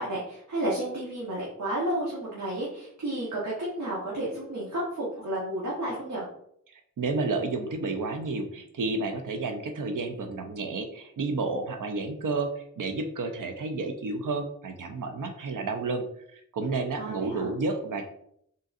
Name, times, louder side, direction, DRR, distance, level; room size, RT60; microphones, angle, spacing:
voice 1, 0.0-6.3 17.0-17.5, right 1 dB, 70° right, -7 dB, 1.3 m, -32 dB
voice 2, 7.0-16.0 16.3-18.1, right 3 dB, 90° right, 6 dB, 0.6 m, -31 dB
4.0 x 3.8 x 2.5 m, 0.69 s
wide cardioid pair, 70°, 31 cm